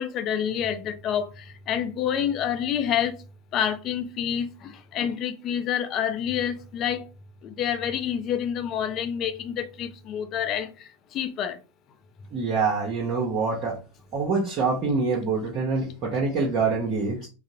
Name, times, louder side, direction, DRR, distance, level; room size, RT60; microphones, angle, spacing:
voice 1, 0.0-3.2 3.5-7.0 7.4-10.7 11.1-11.6, left 9 dB, 40° left, 0.4 m, -28 dB
voice 2, 12.3-13.8 14.1-17.3, right 4 dB, 45° right, 0.8 m, -25 dB
3.7 x 2.0 x 2.6 m
hypercardioid pair, 90°, 0 cm